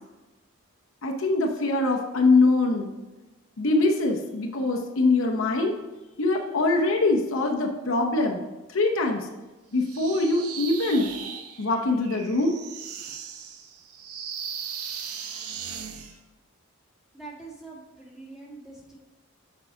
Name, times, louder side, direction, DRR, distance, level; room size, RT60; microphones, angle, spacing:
voice 1, 1.0-2.9 3.6-5.7 6.2-9.3 9.7-11.1 11.6-12.6, left 2 dB, 65° left, 1 dB, 0.7 m, -23 dB
sound 1, 9.8-16.2, right 7 dB, 85° right, 0.7 m, -38 dB
voice 2, 17.1-19.0, right 3 dB, ahead, -6 dB, 1.6 m, -44 dB
7.1 x 4.7 x 3.8 m, 1.1 s
head